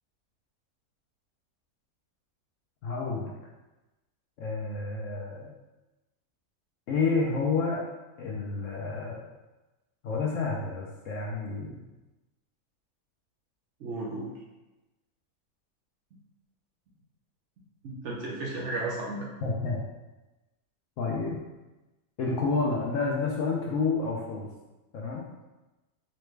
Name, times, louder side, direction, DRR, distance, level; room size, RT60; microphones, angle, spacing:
voice 1, 2.8-3.3 4.4-5.5 6.9-7.8 8.2-9.2 10.0-11.8 19.4-19.8 21.0-21.4 22.2-24.5 24.9-25.2, left 4 dB, 70° left, -2 dB, 0.8 m, -29 dB
voice 2, 13.8-14.3 17.8-19.3, right 2 dB, 60° right, -4 dB, 0.8 m, -34 dB
4.0 x 2.2 x 3.1 m, 1.1 s
omnidirectional pair, 1.6 m